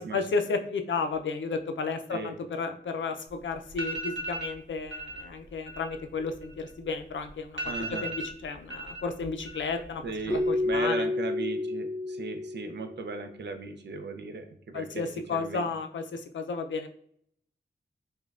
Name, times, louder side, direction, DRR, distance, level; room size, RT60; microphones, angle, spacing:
voice 1, 0.0-7.6 8.0-11.1 14.7-16.9, left 4 dB, 80° left, 6 dB, 0.4 m, -33 dB
sound 1, 3.3-3.4 3.7-4.5 4.9-5.2 5.5-7.0 7.3-7.4 7.6-9.0 9.3-9.9 10.2-10.7, right 1 dB, 90° right, 0.9 m, -37 dB
voice 2, 7.6-8.1 10.0-15.0 15.3-15.7, right 3 dB, 65° right, 6 dB, 0.5 m, -37 dB
Keyboard (musical), 10.3-13.1, left 2 dB, 10° left, 0.8 m, -30 dB
5.0 x 2.2 x 2.4 m, 0.66 s
wide cardioid pair, 95°, 19 cm